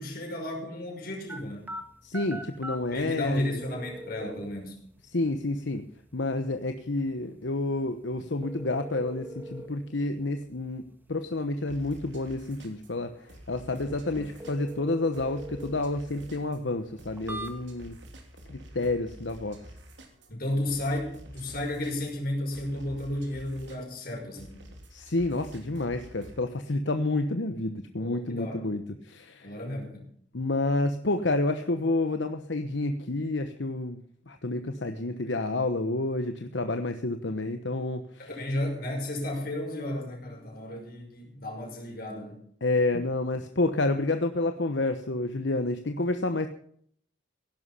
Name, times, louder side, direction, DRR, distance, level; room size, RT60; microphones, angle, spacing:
voice 1, 0.0-1.7 2.9-4.8 13.8-14.3 20.3-24.6 28.0-28.6 29.4-30.1 38.2-42.4, left 1 dB, 50° left, 1 dB, 5.8 m, -33 dB
sound 1, 1.3-18.0, right 1 dB, 10° right, 1.5 m, -45 dB
voice 2, 2.0-3.5 5.1-5.8 6.1-10.8 11.1-13.2 13.5-18.0 18.5-19.6 24.9-29.5 30.3-38.3 42.6-46.5, left 2 dB, 75° left, 7 dB, 1.1 m, -29 dB
sound 2, 11.7-26.4, equal, 75° right, 3.4 m, -49 dB
17.0 x 11.5 x 5.7 m, 0.62 s
head